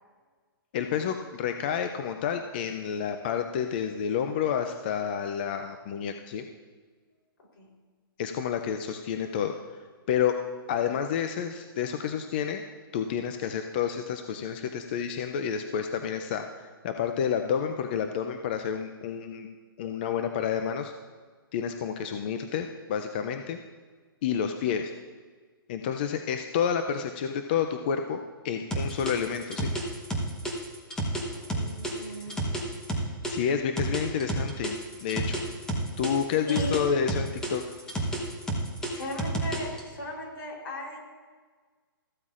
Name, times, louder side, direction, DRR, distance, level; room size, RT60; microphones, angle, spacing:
voice 1, 0.7-6.5 8.2-9.8 10.1-10.4 10.7-12.6 12.9-19.5 19.8-20.9 21.5-23.6 24.2-24.9 25.7-29.7 33.3-35.4 36.0-37.6, left 8 dB, 25° left, 7 dB, 0.4 m, -29 dB
sound 1, 28.7-33.3 33.8-36.8 37.1-39.8, right 1 dB, 5° left, 1.0 m, -31 dB
voice 2, 31.3-32.4 36.5-36.8 38.9-41.0, left 1 dB, 65° left, 0 dB, 3.6 m, -36 dB
14.0 x 12.0 x 2.5 m, 1.5 s
hypercardioid pair, 165°, 12 cm